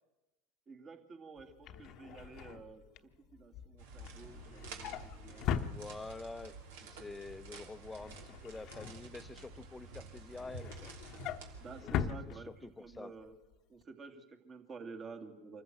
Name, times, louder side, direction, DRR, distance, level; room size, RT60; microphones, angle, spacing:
voice 1, 0.7-5.7 11.6-13.4 13.7-15.6, right 4 dB, 30° right, 6 dB, 2.6 m, -51 dB
Drawer open or close, 1.4-6.4 6.8-7.1 7.4-9.6 10.0-13.0 13.3-13.5 13.8-13.9, left 8 dB, 50° left, 1.0 m, -41 dB
sound 1, 3.8-11.8, right 4 dB, 70° right, 3.1 m, -51 dB
voice 2, 5.5-6.6 6.8-10.9 11.8-13.1, left 3 dB, 15° left, 14 dB, 0.9 m, -47 dB
25.5 x 14.5 x 7.7 m, 1.1 s
hypercardioid pair, 85°, 0 cm